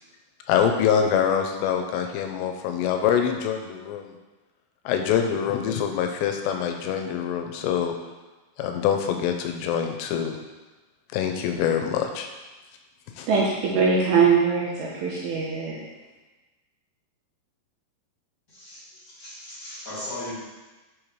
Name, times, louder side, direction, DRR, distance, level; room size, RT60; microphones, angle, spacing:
voice 1, 0.5-4.1 4.9-7.9 8.6-10.4 11.1-12.3 13.2-13.3, left 8 dB, 85° left, 4 dB, 2.7 m, -25 dB
voice 2, 13.3-15.8, right 5 dB, 80° right, -4 dB, 2.4 m, -22 dB
voice 3, 18.5-20.3, left 1 dB, 35° left, -11 dB, 1.9 m, -37 dB
7.5 x 5.1 x 3.1 m, 1.2 s
omnidirectional pair, 5.0 m